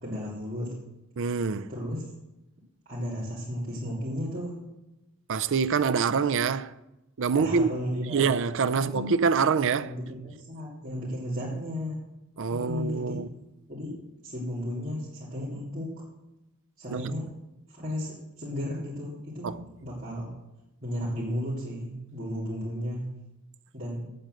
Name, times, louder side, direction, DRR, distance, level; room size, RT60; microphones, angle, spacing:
voice 1, 0.0-0.8 1.7-2.1 2.8-4.6 7.3-8.3 8.7-9.1 9.4-12.0 12.5-13.2 13.7-16.0 16.8-17.3 17.7-20.3 20.8-23.1 23.7-24.1, equal, 40° right, 2.9 m, -34 dB
voice 2, 1.2-1.7 5.3-6.7 7.2-7.7 8.1-9.9 12.4-13.3 16.9-17.0 19.4-19.6, right 5 dB, 60° right, 0.5 m, -25 dB
8.8 x 7.8 x 7.7 m
head